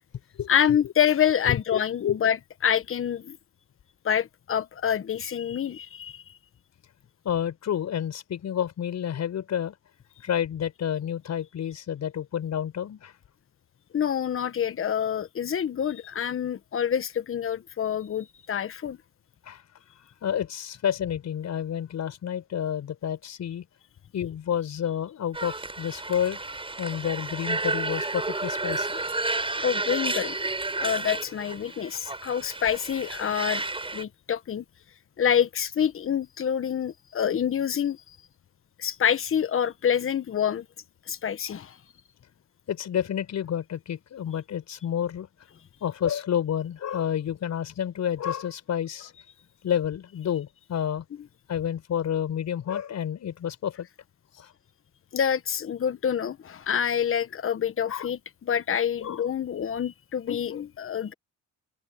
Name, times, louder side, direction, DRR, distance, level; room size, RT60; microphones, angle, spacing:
voice 1, 0.5-2.4 2.6-3.4 4.0-6.2 13.9-19.0 29.6-30.5 30.8-33.6 33.9-34.6 35.2-38.2 38.8-40.6 41.1-41.8 55.1-61.1, left 8 dB, 45° left, 1.3 m, -27 dB
voice 2, 1.5-2.2 7.2-9.7 10.2-13.1 19.4-19.6 20.2-23.6 24.1-26.4 26.8-29.0 42.7-45.3 45.8-49.1 49.6-51.1 51.5-53.9 54.3-54.5 57.9-58.1 59.0-59.2, left 9 dB, 65° left, 6.9 m, -29 dB
sound 1, 25.3-34.0, right 2 dB, 15° right, 6.1 m, -31 dB
open air
cardioid pair, 90°, 30 cm